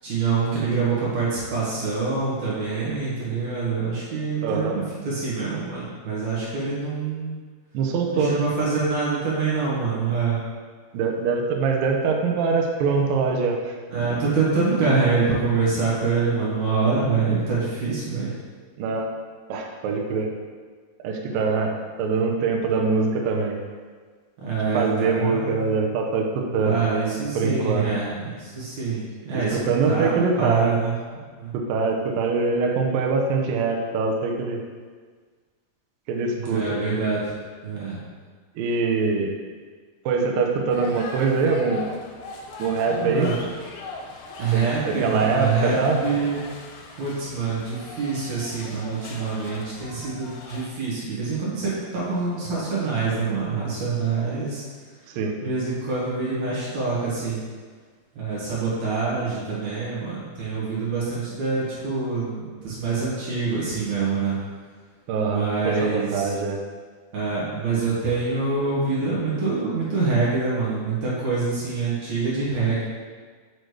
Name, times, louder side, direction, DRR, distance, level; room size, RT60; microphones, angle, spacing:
voice 1, 0.0-7.4 8.1-10.4 13.9-18.3 24.4-25.6 26.6-29.6 29.8-30.9 31.4-31.5 36.3-37.2 37.6-38.0 42.9-43.3 44.4-46.4 47.0-54.6 55.4-57.4 58.2-64.4 65.2-66.3 67.1-72.8, right 4 dB, 55° right, -7 dB, 2.2 m, -25 dB
voice 2, 4.4-4.8 7.7-8.4 10.9-13.8 18.8-19.1 19.5-20.3 21.0-23.6 24.7-26.8 27.4-27.9 29.3-30.8 31.5-34.6 36.1-36.6 38.6-39.4 40.1-41.9 42.6-43.3 44.5-46.0 55.1-55.4 65.1-66.6, right 4 dB, 80° right, 1 dB, 2.0 m, -23 dB
sound 1, 40.7-50.7, left 3 dB, 75° left, 2.6 m, -39 dB
6.4 x 6.4 x 3.2 m, 1.5 s
omnidirectional pair, 5.0 m